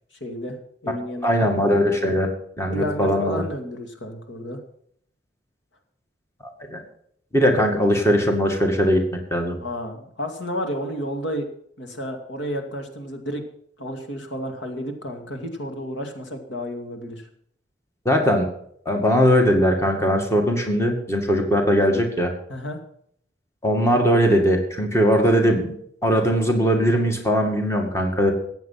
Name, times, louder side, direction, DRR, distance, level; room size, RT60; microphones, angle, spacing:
voice 1, 0.2-0.6 0.8-1.5 2.6-4.6 9.6-11.5 11.8-13.4 13.8-17.3 22.5-22.8, equal, 80° left, 5 dB, 2.4 m, -31 dB
voice 2, 1.2-2.3 2.6-3.4 6.7-6.8 7.3-9.6 18.1-18.5 18.9-22.3 23.6-25.7 26.0-28.3, equal, 15° left, 2 dB, 2.1 m, -20 dB
15.0 x 9.1 x 5.9 m, 0.67 s
head